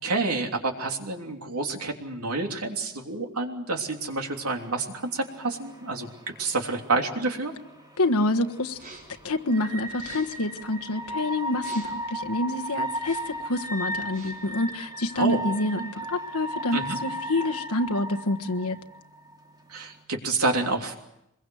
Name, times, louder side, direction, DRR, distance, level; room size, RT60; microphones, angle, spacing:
voice 1, 0.0-6.1 6.4-7.5 15.2-15.4 16.7-17.0 19.7-20.9, right 3 dB, 90° right, 3 dB, 3.2 m, -28 dB
sound 1, 4.1-20.0, equal, 20° right, 2.9 m, -37 dB
voice 2, 8.0-8.8 9.2-18.8, left 2 dB, 85° left, 6 dB, 1.4 m, -27 dB
sound 2, 8.7-9.2 9.9-10.5 11.5-12.1 12.9-13.4 13.9-14.5, right 3 dB, 40° right, 4.9 m, -48 dB
25.5 x 22.0 x 7.9 m, 0.84 s
head